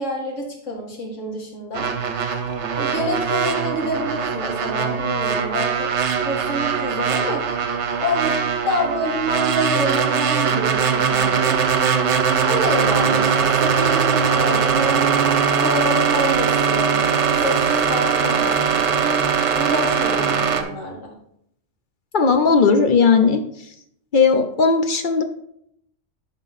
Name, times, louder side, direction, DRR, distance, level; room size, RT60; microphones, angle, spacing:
voice 1, 0.0-1.9 2.8-5.9 6.2-7.4 8.0-11.6 12.4-15.0 15.6-17.1 17.4-18.8 19.5-21.1, left 1 dB, 80° left, 0 dB, 2.0 m, -27 dB
sound 1, 1.7-20.6, right 6 dB, 70° right, 1.0 m, -21 dB
voice 2, 22.1-23.4 24.1-25.2, left 5 dB, 50° left, 6 dB, 0.7 m, -16 dB
11.0 x 3.8 x 4.1 m, 0.72 s
omnidirectional pair, 1.3 m